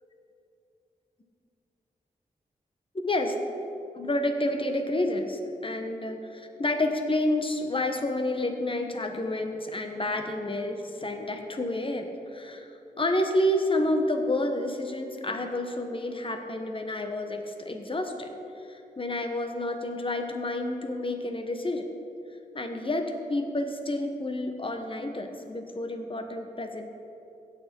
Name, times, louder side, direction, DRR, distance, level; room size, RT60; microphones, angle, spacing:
voice 1, 3.0-3.3 3.9-12.7 13.0-18.3 18.7-21.9 22.5-26.9, left 1 dB, 35° left, 5 dB, 1.2 m, -29 dB
17.0 x 6.4 x 4.5 m, 2.8 s
cardioid pair, 70°, 15 cm